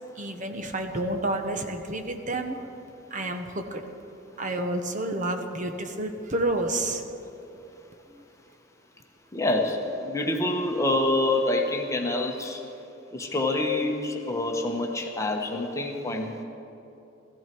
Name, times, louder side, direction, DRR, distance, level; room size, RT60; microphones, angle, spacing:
voice 1, 0.2-2.7 3.1-3.8 4.4-7.0, right 1 dB, 45° right, 5 dB, 1.2 m, -29 dB
voice 2, 9.3-12.6 13.1-16.4, left 2 dB, 15° left, 2 dB, 1.2 m, -26 dB
18.5 x 15.0 x 4.6 m, 2.9 s
head